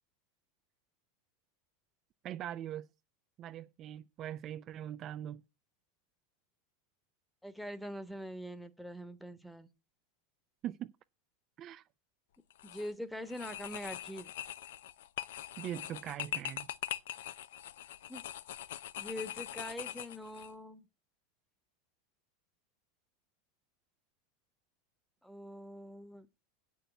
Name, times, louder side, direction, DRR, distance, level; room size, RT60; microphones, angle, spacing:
voice 1, 2.2-2.9 3.4-5.4 10.6-10.9 11.6-11.8 15.6-16.7, right 11 dB, 40° right, 0.4 m, -41 dB
voice 2, 7.4-9.7 12.6-14.3 18.1-18.2 19.0-20.8 25.2-26.3, equal, ahead, 1.1 m, -43 dB
sound 1, 12.5-12.9 13.3-20.5, left 12 dB, 80° left, 0.5 m, -42 dB
8.1 x 6.3 x 8.0 m
supercardioid pair, 120°, 0 cm